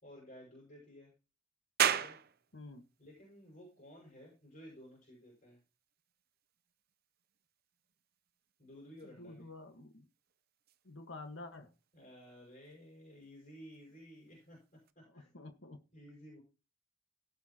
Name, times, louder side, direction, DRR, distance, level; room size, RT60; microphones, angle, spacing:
voice 1, 0.0-1.1 1.9-2.2 3.0-5.6 8.6-9.5 11.9-14.6 14.9-15.3 15.9-16.4, equal, 40° left, 6.8 m, -54 dB
sound 1, 1.8-14.9, right 9 dB, 50° right, 0.7 m, -42 dB
voice 2, 2.5-2.8 9.2-10.1 10.8-11.7 15.1-15.8, left 2 dB, 70° left, 1.5 m, -49 dB
17.0 x 7.4 x 3.0 m
head